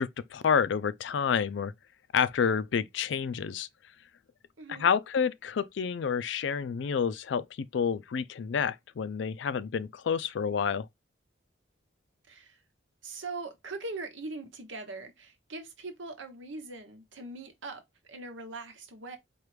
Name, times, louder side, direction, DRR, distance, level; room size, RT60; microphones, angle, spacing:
voice 1, 0.0-1.7 2.1-3.7 4.7-7.5 7.7-10.9, left 6 dB, 70° left, 0.4 m, -29 dB
voice 2, 4.6-4.9 12.3-12.6 13.0-17.8 18.1-19.2, right 3 dB, 80° right, 1.1 m, -41 dB
4.5 x 2.4 x 3.2 m
head